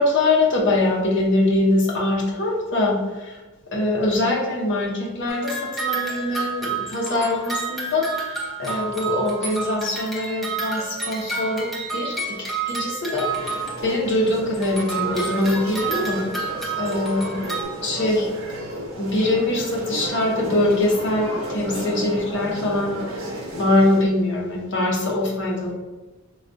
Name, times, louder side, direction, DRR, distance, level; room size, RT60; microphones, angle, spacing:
voice 1, 0.0-3.4 3.7-12.4 12.7-16.2 16.8-17.4 17.8-18.3 18.9-23.0 23.5-25.7, left 2 dB, 60° left, -2 dB, 0.8 m, -23 dB
sound 1, 5.3-14.1 14.5-17.6, right 4 dB, ahead, 0.6 m, -30 dB
sound 2, 13.3-24.0, right 1 dB, 80° right, 0.8 m, -33 dB
4.5 x 2.3 x 2.5 m, 1.2 s
head